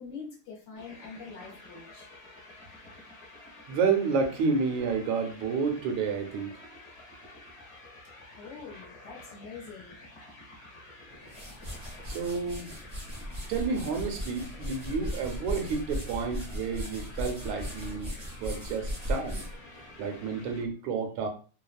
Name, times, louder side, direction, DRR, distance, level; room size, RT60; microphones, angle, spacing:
voice 1, 0.0-2.1 8.4-10.0 18.6-18.7, left 5 dB, 70° left, 0 dB, 1.2 m, -44 dB
sound 1, 0.7-20.6, left 2 dB, 40° left, 1.1 m, -50 dB
voice 2, 3.7-6.5 12.0-12.7 13.5-18.1 18.4-19.4 19.8-21.3, right 5 dB, 80° right, 5 dB, 1.4 m, -30 dB
sound 2, 11.1-20.4, equal, 40° right, 0.5 m, -38 dB
3.4 x 2.0 x 2.3 m, 0.37 s
omnidirectional pair, 2.3 m